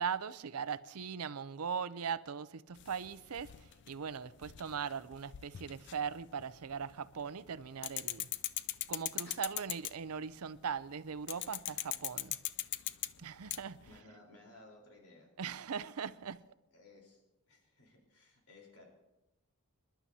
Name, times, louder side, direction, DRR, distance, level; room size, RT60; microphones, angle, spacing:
voice 1, 0.0-8.3 8.9-12.4 13.2-13.8 15.4-16.4, right 6 dB, 85° right, 0.6 m, -40 dB
sound 1, 2.8-6.9 7.2-10.2 11.3-14.0, left 14 dB, 55° left, 0.4 m, -40 dB
voice 2, 13.8-15.3 16.7-17.2 17.5-18.9, left 2 dB, 80° left, 4.1 m, -58 dB
27.5 x 11.5 x 2.8 m
head